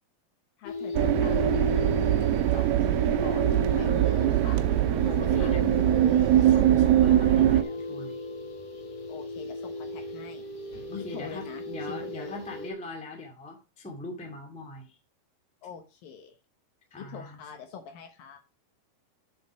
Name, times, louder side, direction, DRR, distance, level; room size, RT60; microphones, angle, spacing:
voice 1, 0.6-1.9 2.1-4.6 5.0-6.4 9.1-10.5 10.9-12.4 15.6-16.4 17.0-18.4, left 7 dB, 70° left, 5 dB, 2.7 m, -44 dB
sound 1, 0.6-12.7, left 2 dB, 50° left, 2.5 m, -35 dB
sound 2, 0.9-7.6, right 12 dB, 80° right, 2.4 m, -22 dB
voice 2, 5.2-5.8 6.4-8.2 10.9-15.0 16.9-17.4, left 2 dB, 5° left, 1 dB, 1.4 m, -40 dB
7.6 x 7.3 x 4.7 m, 0.29 s
omnidirectional pair, 4.7 m